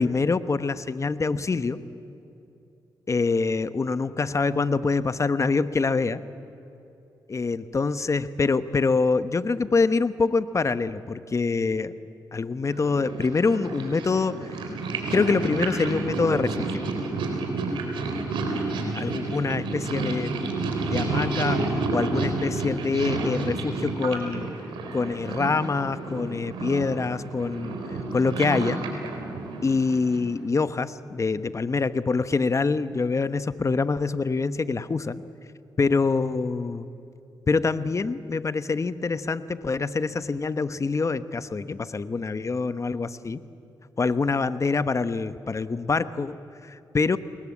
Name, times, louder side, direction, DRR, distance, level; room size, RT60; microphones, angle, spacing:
voice 1, 0.0-1.8 3.1-6.2 7.3-11.9 12.3-14.3 15.1-16.8 18.9-20.3 20.8-24.5 24.9-28.8 29.6-35.2 35.8-36.9 37.5-43.4 44.0-47.2, left 4 dB, 40° left, 13 dB, 1.1 m, -25 dB
Purr, 12.7-30.4, right 3 dB, 85° right, 3.7 m, -30 dB
30.0 x 21.0 x 8.6 m, 2.8 s
cardioid pair, 60°, 8 cm